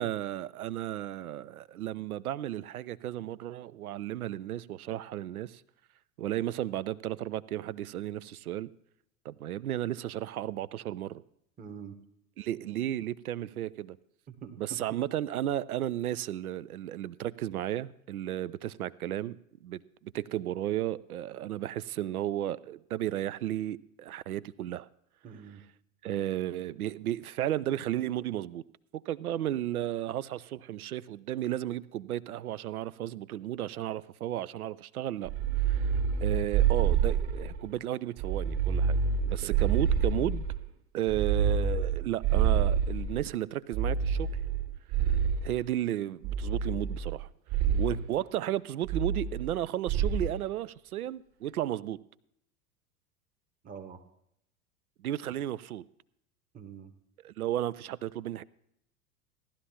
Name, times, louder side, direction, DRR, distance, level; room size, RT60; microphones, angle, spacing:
voice 1, 0.0-5.6 6.2-8.7 9.2-11.2 12.4-14.0 14.6-24.9 26.0-28.6 28.9-35.9 36.2-39.0 39.3-40.5 40.9-44.3 45.1-45.2 45.4-47.3 47.8-52.0 55.0-55.8 57.2-58.4, right 12 dB, 75° right, 0.5 m, -34 dB
voice 2, 11.6-12.0 14.3-14.8 25.2-25.6 39.2-39.6 39.9-40.1 47.6-47.9 53.6-54.0 56.5-56.9, right 7 dB, 20° right, 1.0 m, -45 dB
sound 1, 35.3-37.7 38.2-40.6 41.1-43.3 43.7-45.6 46.2-47.2 47.5-48.0 48.9-49.6 49.9-50.3, right 7 dB, 50° right, 1.8 m, -28 dB
17.0 x 11.5 x 2.8 m
figure-of-eight pair, 85°, 44 cm